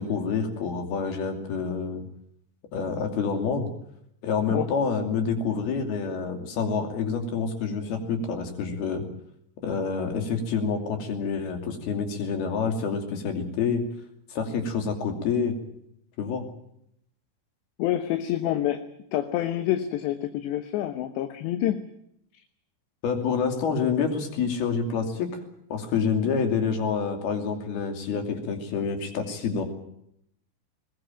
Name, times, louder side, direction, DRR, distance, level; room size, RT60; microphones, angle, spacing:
voice 1, 0.0-2.1 2.7-3.7 4.2-9.1 9.6-13.9 14.3-15.6 16.2-16.5 23.0-25.4 25.7-29.6, left 5 dB, 60° left, 5 dB, 4.5 m, -27 dB
voice 2, 17.8-18.8 19.1-21.8, left 12 dB, 75° left, 8 dB, 3.2 m, -27 dB
21.0 x 20.0 x 9.0 m, 0.74 s
omnidirectional pair, 5.3 m